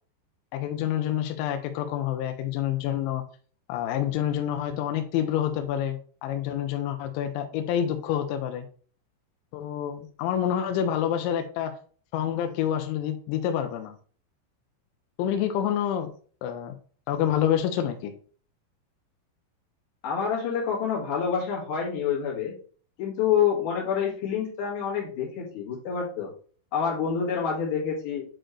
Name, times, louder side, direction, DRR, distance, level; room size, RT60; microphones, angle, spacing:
voice 1, 0.5-3.2 3.7-8.7 9.5-11.7 12.1-14.0 15.2-16.1 16.4-16.7 17.1-18.1, left 10 dB, 80° left, 6 dB, 2.9 m, -27 dB
voice 2, 20.0-22.5 23.0-26.3 26.7-28.2, left 7 dB, 55° left, -3 dB, 2.8 m, -27 dB
7.7 x 4.2 x 3.1 m, 0.43 s
omnidirectional pair, 5.5 m